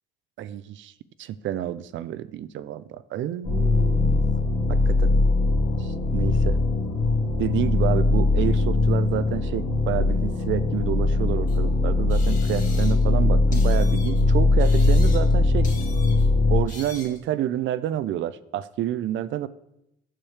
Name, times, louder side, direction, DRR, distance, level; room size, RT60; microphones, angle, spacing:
voice 1, 0.4-0.9 1.2-4.3 4.7-5.1 5.8-6.6 7.4-15.7 16.5-19.5, right 12 dB, 75° right, 16 dB, 0.4 m, -29 dB
sound 1, 3.4-16.6, left 2 dB, 65° left, 1.7 m, -21 dB
sound 2, 11.5-11.6 12.1-13.1 13.5-14.2 14.6-15.4 15.6-16.3 16.7-17.2, left 3 dB, 40° left, 2.1 m, -43 dB
8.9 x 6.3 x 3.3 m, 0.83 s
cardioid pair, 90°, 20 cm